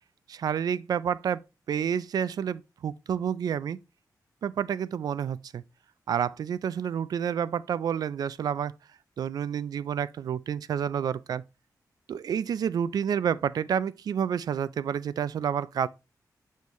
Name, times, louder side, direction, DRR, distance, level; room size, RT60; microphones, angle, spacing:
voice 1, 0.3-1.4 1.7-3.8 4.4-5.6 6.1-8.7 9.2-11.4 12.1-15.9, right 8 dB, 70° right, 0.3 m, -29 dB
6.3 x 5.4 x 3.1 m
wide cardioid pair, 175°, 7 cm